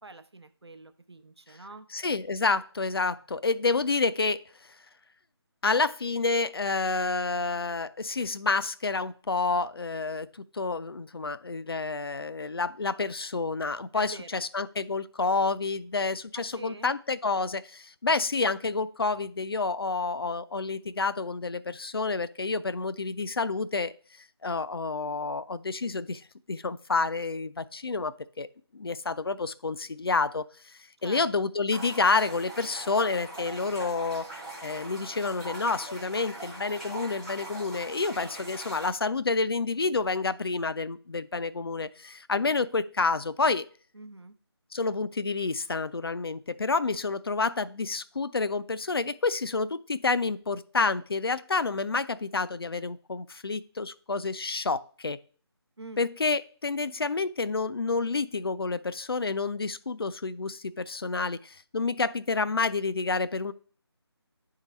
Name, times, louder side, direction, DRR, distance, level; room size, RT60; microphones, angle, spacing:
voice 1, 0.0-1.9 13.9-14.4 16.3-16.9 31.0-31.2 43.9-44.3 55.8-56.0, right 2 dB, 70° right, 10 dB, 0.7 m, -45 dB
voice 2, 1.9-4.4 5.6-23.9 24.4-26.2 26.5-28.5 28.7-34.3 34.6-43.6 44.7-55.2 56.0-63.5, left 4 dB, 60° left, 15 dB, 0.4 m, -29 dB
sound 1, 31.7-38.9, right 1 dB, ahead, 0.6 m, -41 dB
10.0 x 3.8 x 3.1 m, 0.44 s
figure-of-eight pair, 155°, 14 cm